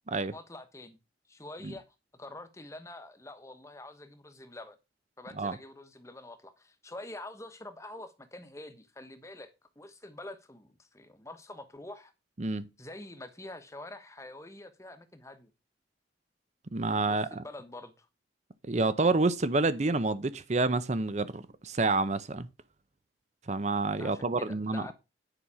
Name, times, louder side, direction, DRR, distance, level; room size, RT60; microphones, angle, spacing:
voice 1, 0.3-1.0 1.3-1.9 2.2-4.8 5.2-12.1 12.8-15.5 17.1-18.1 24.0-24.9, left 2 dB, 15° left, 1.1 m, -46 dB
voice 2, 16.7-17.4 18.7-22.5 23.5-24.9, right 3 dB, 40° right, 0.6 m, -28 dB
10.0 x 5.7 x 4.8 m
head